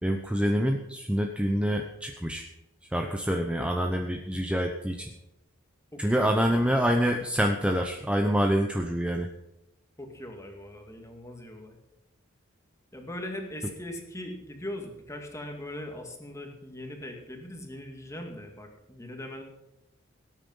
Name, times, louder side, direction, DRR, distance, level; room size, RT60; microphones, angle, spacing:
voice 1, 0.0-2.5 2.9-5.1 6.0-9.3, equal, 5° right, 3 dB, 0.8 m, -26 dB
voice 2, 5.9-6.7 10.0-11.8 12.9-19.4, left 1 dB, 15° left, 3 dB, 2.2 m, -40 dB
17.5 x 9.0 x 5.6 m, 0.90 s
head